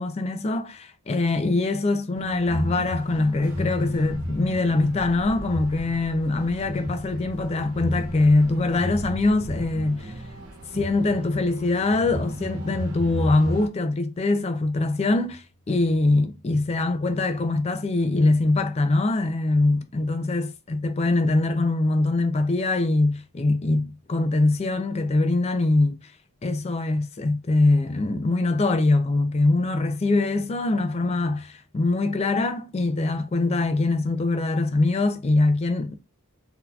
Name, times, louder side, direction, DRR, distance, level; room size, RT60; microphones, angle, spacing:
voice 1, 0.0-10.1 10.7-26.0 26.4-35.9, left 2 dB, 30° left, 0.3 m, -23 dB
sound 1, 2.1-13.7, equal, 85° right, 1.0 m, -34 dB
4.0 x 2.7 x 2.3 m
head